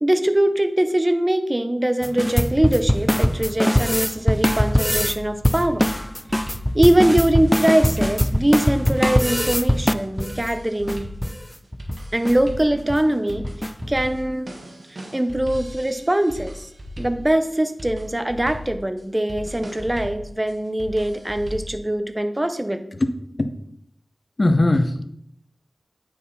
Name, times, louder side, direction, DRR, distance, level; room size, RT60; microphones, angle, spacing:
voice 1, 0.0-5.9 6.7-11.1 12.1-13.5 13.9-14.5 14.9-16.7 17.0-22.8, right 1 dB, 25° right, 9 dB, 0.8 m, -22 dB
sound 1, 2.0-5.2 5.4-10.4 10.9-11.0 11.2-11.4 11.7-12.0 12.2-12.3 12.8-13.0 13.4-13.9, equal, 10° left, 0.4 m, -21 dB
sound 2, 3.6-21.8, equal, 65° right, 1.5 m, -37 dB
voice 2, 24.4-25.0, left 2 dB, 50° left, 9 dB, 0.7 m, -19 dB
8.8 x 4.7 x 4.1 m, 0.73 s
cardioid pair, 40°, 0 cm